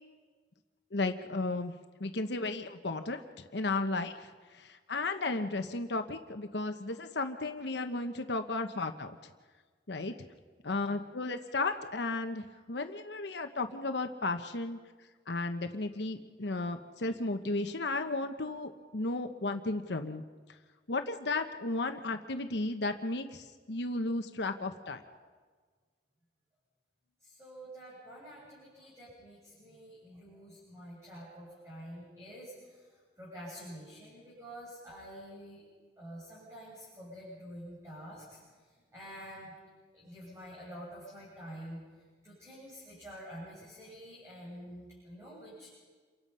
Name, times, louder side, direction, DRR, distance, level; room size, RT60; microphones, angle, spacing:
voice 1, 0.9-1.7 2.0-3.2 3.5-9.1 9.9-10.1 10.6-14.8 15.3-20.2 20.9-25.0, left 2 dB, 70° left, 7 dB, 1.0 m, -34 dB
voice 2, 27.2-32.9 33.2-35.6 36.0-38.6 38.9-39.5 39.9-41.8 42.2-45.8, equal, 15° right, -8 dB, 7.7 m, -48 dB
29.0 x 24.0 x 5.6 m, 1.5 s
head